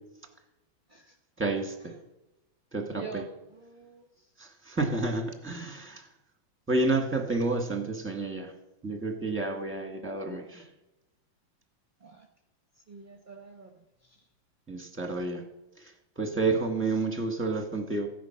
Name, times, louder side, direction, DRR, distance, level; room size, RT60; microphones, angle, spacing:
voice 1, 1.4-1.7 2.7-3.2 4.4-6.0 6.7-8.5 8.8-10.6 14.7-15.4 16.2-18.1, right 3 dB, 5° right, 4 dB, 1.6 m, -30 dB
voice 2, 2.9-4.3 12.0-12.3 12.9-13.7 14.0-14.3, right 6 dB, 30° right, 4 dB, 1.0 m, -46 dB
15.0 x 10.0 x 5.9 m, 0.98 s
omnidirectional pair, 2.2 m